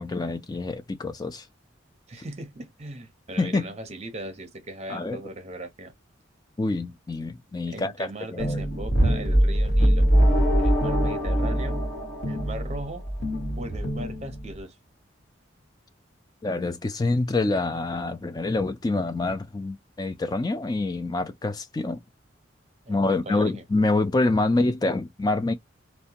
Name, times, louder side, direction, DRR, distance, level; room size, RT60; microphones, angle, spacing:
voice 1, 0.0-1.4 3.4-3.7 4.9-5.2 6.6-8.6 16.4-22.0 22.9-25.5, left 2 dB, 20° left, 0.4 m, -26 dB
voice 2, 2.1-5.9 7.7-10.1 10.6-11.9 12.2-13.0 13.6-14.8 22.9-23.6, right 1 dB, 35° right, 0.6 m, -38 dB
sound 1, 8.4-14.6, right 1 dB, 55° left, 1.3 m, -23 dB
sound 2, 10.1-13.1, left 1 dB, 70° left, 1.2 m, -30 dB
2.7 x 2.1 x 2.7 m
head